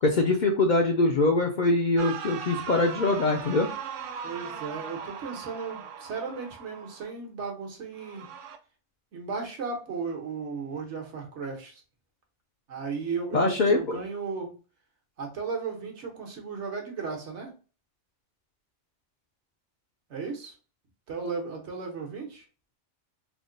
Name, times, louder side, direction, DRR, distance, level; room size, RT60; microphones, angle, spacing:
voice 1, 0.0-3.7 13.3-14.0, left 2 dB, 55° left, 3 dB, 0.5 m, -23 dB
sound 1, 2.0-7.1 8.0-8.6, right 7 dB, 85° right, 0.9 m, -39 dB
voice 2, 4.2-8.3 9.1-11.8 12.7-14.5 15.2-17.5 20.1-20.5 21.1-22.4, right 5 dB, 70° right, 2 dB, 1.3 m, -35 dB
3.5 x 2.2 x 3.8 m, 0.36 s
omnidirectional pair, 1.2 m